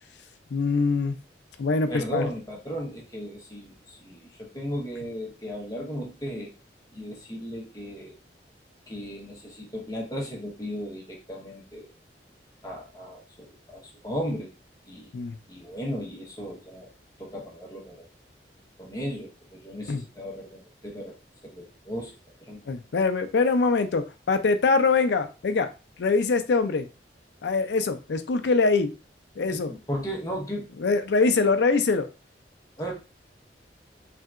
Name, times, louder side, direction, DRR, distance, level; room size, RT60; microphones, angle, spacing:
voice 1, 0.5-1.2 1.6-2.2 15.1-15.4 19.9-20.0 22.7-25.7 26.0-26.9 27.4-28.9 29.4-29.7 30.8-32.1, left 4 dB, 80° left, 9 dB, 0.4 m, -23 dB
voice 2, 1.9-6.5 6.9-8.2 8.9-11.9 12.6-14.5 14.9-15.1 15.5-16.9 17.2-18.0 18.8-21.2 21.5-22.1 22.4-22.6 29.5-30.7 32.8-32.9, equal, 20° left, -2 dB, 0.8 m, -35 dB
3.4 x 2.8 x 2.3 m, 0.30 s
head